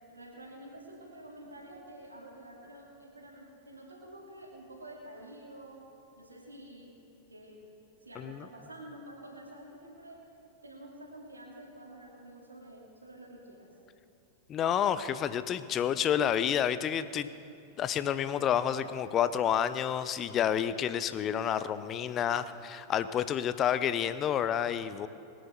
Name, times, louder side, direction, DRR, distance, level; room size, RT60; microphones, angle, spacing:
voice 1, 0.1-5.9 6.2-7.0 7.3-7.6 8.0-10.2 10.6-13.7, right 1 dB, 80° right, -2 dB, 2.5 m, -49 dB
voice 2, 8.2-8.5 14.5-17.3 17.8-25.1, left 9 dB, 30° left, 13 dB, 0.6 m, -29 dB
22.0 x 9.3 x 4.5 m, 2.6 s
figure-of-eight pair, 90°, 0 cm